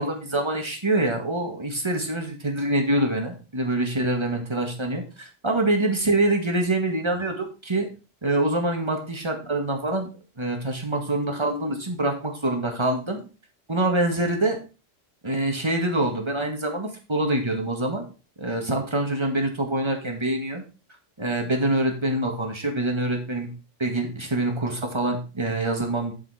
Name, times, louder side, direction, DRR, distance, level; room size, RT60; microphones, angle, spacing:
voice 1, 0.0-7.9 8.2-10.1 10.4-13.2 13.7-14.6 15.2-18.1 18.4-20.6 21.2-23.5 23.8-26.1, right 1 dB, 20° right, 3 dB, 1.9 m, -25 dB
8.1 x 7.3 x 4.3 m, 0.32 s
omnidirectional pair, 1.3 m